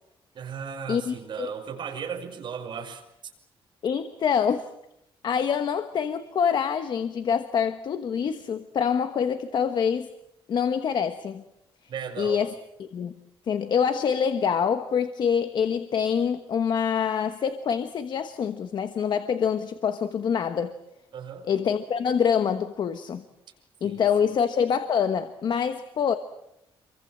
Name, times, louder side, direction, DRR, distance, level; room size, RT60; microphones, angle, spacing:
voice 1, 0.3-3.0 11.9-12.5 21.1-21.5 23.8-24.4, right 7 dB, 55° right, 5.6 m, -36 dB
voice 2, 0.9-1.5 3.8-4.7 5.2-10.1 10.5-11.4 12.2-12.5 12.8-13.1 13.5-20.8 21.5-23.2 23.8-26.2, left 7 dB, 55° left, 1.3 m, -25 dB
28.5 x 24.0 x 7.7 m
wide cardioid pair, 165°, 10 cm